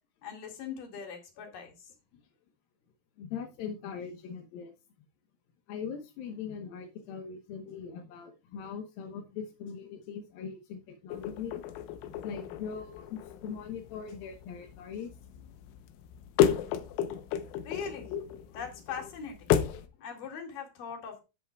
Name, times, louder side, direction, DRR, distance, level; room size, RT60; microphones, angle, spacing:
voice 1, 0.2-1.7 17.6-18.1 18.6-19.5 20.0-21.2, left 6 dB, 50° left, 2 dB, 3.3 m, -40 dB
voice 2, 3.2-4.7 5.7-11.6 12.2-15.1 18.1-18.2, left 7 dB, 70° left, 3 dB, 2.3 m, -40 dB
sound 1, 11.1-19.9, left 10 dB, 85° left, 3.5 m, -33 dB
11.0 x 10.5 x 2.3 m, 0.28 s
omnidirectional pair, 5.6 m